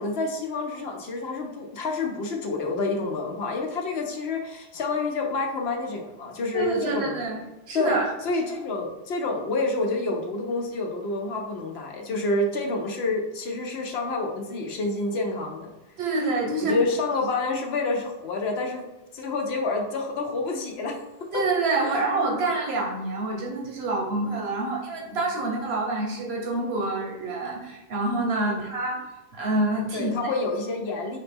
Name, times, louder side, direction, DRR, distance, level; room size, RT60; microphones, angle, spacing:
voice 1, 0.0-7.3 7.7-15.7 16.6-18.9 19.1-21.0 21.8-22.0 28.4-28.6 29.9-31.2, left 3 dB, 75° left, 2 dB, 0.9 m, -28 dB
voice 2, 6.5-7.4 7.7-8.1 16.0-16.8 21.3-29.0 29.3-30.1, right 2 dB, 75° right, -1 dB, 1.2 m, -27 dB
4.8 x 2.9 x 3.5 m, 1.1 s
omnidirectional pair, 1.1 m